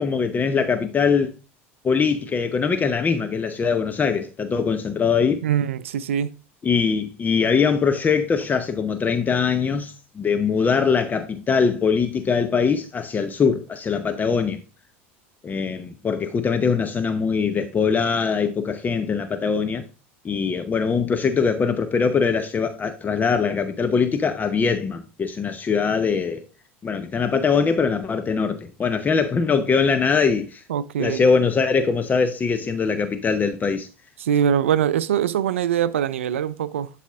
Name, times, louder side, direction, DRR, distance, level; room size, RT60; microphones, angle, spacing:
voice 1, 0.0-1.3 1.8-5.4 6.6-14.6 15.4-19.8 20.2-26.4 26.8-30.6 31.0-33.9, left 5 dB, 25° left, 0.8 m, -22 dB
voice 2, 5.4-6.3 30.7-31.2 34.2-36.9, right 9 dB, 75° right, 0.5 m, -22 dB
11.0 x 4.2 x 3.6 m
hypercardioid pair, 80°, 7 cm